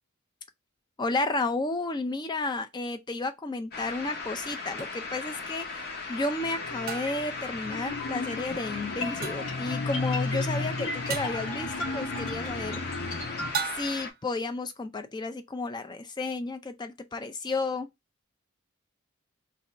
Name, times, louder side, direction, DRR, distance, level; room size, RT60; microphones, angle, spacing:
voice 1, 1.0-5.7 6.1-12.8 13.8-17.9, left 2 dB, 20° left, 0.4 m, -32 dB
sound 1, 3.7-14.1, left 4 dB, 50° left, 0.8 m, -38 dB
sound 2, 4.8-4.9 6.9-7.4 9.2-9.6 11.1-11.5 13.5-14.2, right 6 dB, 45° right, 0.6 m, -35 dB
sound 3, 6.4-13.5, left 2 dB, 85° left, 1.1 m, -34 dB
3.0 x 2.6 x 4.2 m
head